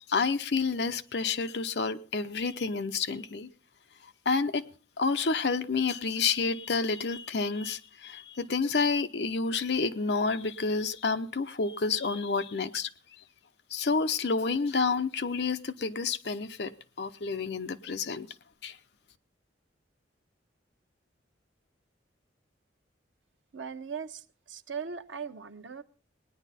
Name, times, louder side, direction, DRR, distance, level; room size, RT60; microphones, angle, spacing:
voice 1, 0.0-3.5 4.3-4.7 5.0-12.9 13.7-18.3 18.6-18.8, left 4 dB, 60° left, 0.7 m, -29 dB
voice 2, 23.5-24.2 24.5-25.8, right 6 dB, 85° right, 0.8 m, -38 dB
19.0 x 10.0 x 4.2 m
head